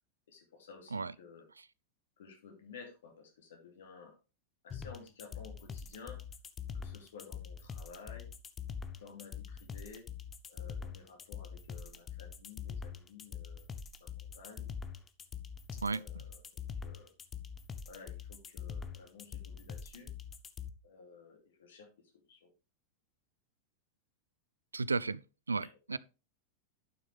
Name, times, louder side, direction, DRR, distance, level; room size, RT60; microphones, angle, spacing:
voice 1, 0.3-1.4 2.2-4.1 4.6-6.2 6.7-8.3 9.0-10.0 10.5-14.7 15.7-17.1 17.8-20.1 20.8-21.9 22.3-22.5 25.6-25.8, left 5 dB, 60° left, 2.7 m, -53 dB
sound 1, 4.7-20.7, left 6 dB, 20° left, 0.8 m, -43 dB
voice 2, 24.7-25.2 25.5-26.0, right 4 dB, 75° right, 0.3 m, -33 dB
11.0 x 6.2 x 3.4 m
figure-of-eight pair, 90°, 0 cm